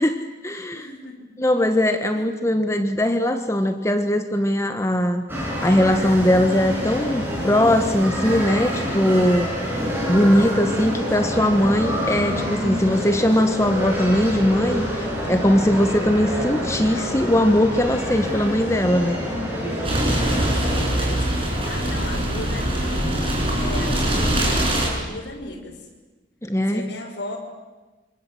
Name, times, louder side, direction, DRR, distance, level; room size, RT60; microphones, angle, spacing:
voice 1, 0.0-0.9 1.4-5.2 5.6-9.5 10.1-19.2 26.4-26.9, left 1 dB, 15° left, 7 dB, 1.3 m, -20 dB
voice 2, 0.7-1.3 2.1-2.2 19.3-19.5 20.2-25.8 26.7-27.4, left 1 dB, 75° left, 2 dB, 5.9 m, -37 dB
sound 1, 5.3-20.8, equal, 10° right, 7.9 m, -27 dB
sound 2, 19.8-24.9, right 1 dB, 30° right, 7.0 m, -22 dB
27.5 x 26.0 x 7.8 m, 1.2 s
head